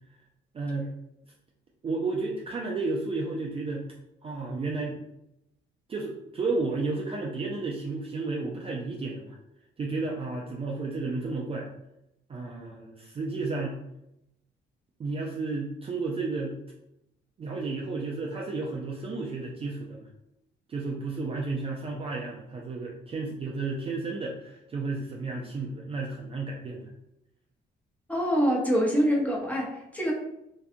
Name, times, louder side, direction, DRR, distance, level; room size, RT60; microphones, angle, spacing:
voice 1, 0.5-0.9 1.8-3.9 4.2-5.0 5.9-9.4 9.8-11.7 12.3-13.7 15.0-16.6 17.4-20.1 20.7-26.9, right 3 dB, 30° right, -2 dB, 0.4 m, -32 dB
voice 2, 28.1-30.1, equal, 5° left, -3 dB, 0.7 m, -25 dB
2.6 x 2.3 x 2.5 m, 0.85 s
cardioid pair, 90°, 20 cm